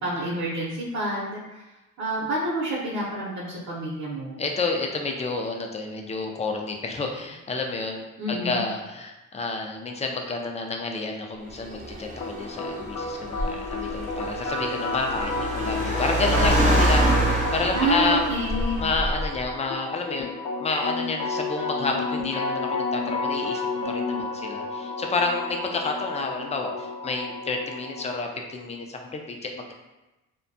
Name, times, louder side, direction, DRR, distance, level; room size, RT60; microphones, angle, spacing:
voice 1, 0.0-1.6 2.0-4.4 8.2-8.6 17.7-18.9, right 1 dB, 65° right, -6 dB, 0.7 m, -28 dB
voice 2, 4.4-18.3 18.8-29.7, left 3 dB, 20° left, 2 dB, 0.4 m, -29 dB
Car, 11.5-19.5, right 1 dB, 25° right, 0.6 m, -26 dB
sound 1, 12.2-28.2, left 3 dB, 70° left, 0.6 m, -32 dB
2.6 x 2.2 x 2.6 m, 1.0 s
cardioid pair, 90°, 30 cm